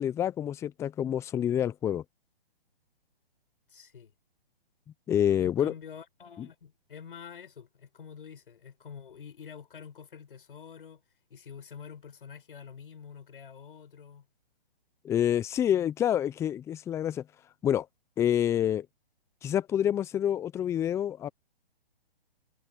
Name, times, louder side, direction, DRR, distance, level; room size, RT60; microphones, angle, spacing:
voice 1, 0.0-2.0 5.1-5.7 15.0-17.2 17.6-17.9 18.2-18.9 19.4-21.3, left 10 dB, 10° left, 0.8 m, -27 dB
voice 2, 3.7-4.1 5.4-11.0 11.3-14.3, left 7 dB, 65° left, 6.9 m, -47 dB
figure-of-eight pair, 135°, 30 cm